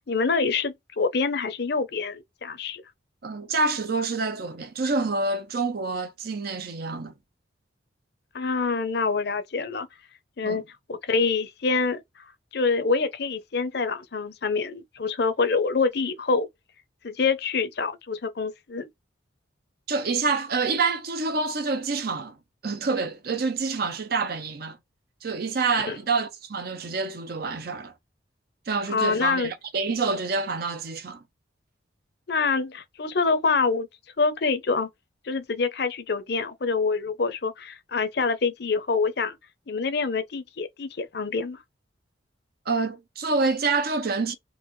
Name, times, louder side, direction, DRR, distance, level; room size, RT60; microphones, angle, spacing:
voice 1, 0.1-2.8 8.3-9.9 10.4-10.6 10.9-12.0 12.5-16.5 17.0-18.9 25.9-26.0 28.9-29.5 32.3-33.9 34.2-34.9 35.2-39.4 39.7-41.6, left 4 dB, 55° left, 0.6 m, -26 dB
voice 2, 3.2-7.1 10.4-10.6 19.9-22.4 22.6-24.8 25.2-27.9 28.7-31.2 42.7-44.3, right 4 dB, 50° right, 0.6 m, -27 dB
3.9 x 2.4 x 3.0 m
head